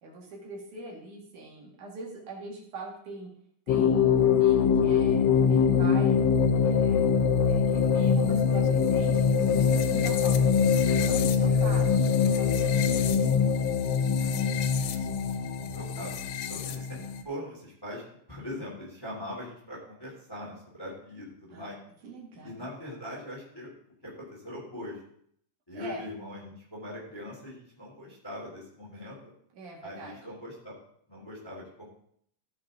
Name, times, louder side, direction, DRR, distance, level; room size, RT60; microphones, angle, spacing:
voice 1, 0.0-3.3 3.7-6.2 6.6-10.5 10.8-13.7 14.2-14.4 21.5-21.7 22.0-22.5 25.7-26.0 29.6-30.2, right 2 dB, 70° right, -2 dB, 3.6 m, -43 dB
sound 1, 3.7-17.2, left 6 dB, 80° left, 1.4 m, -23 dB
voice 2, 11.3-12.1 13.0-13.6 14.8-16.1 16.5-18.0 18.3-21.7 22.4-23.7 24.0-25.0 25.7-29.2 29.8-30.8 31.1-31.8, left 1 dB, 5° left, -4 dB, 2.8 m, -42 dB
15.5 x 5.9 x 3.8 m, 0.65 s
omnidirectional pair, 3.7 m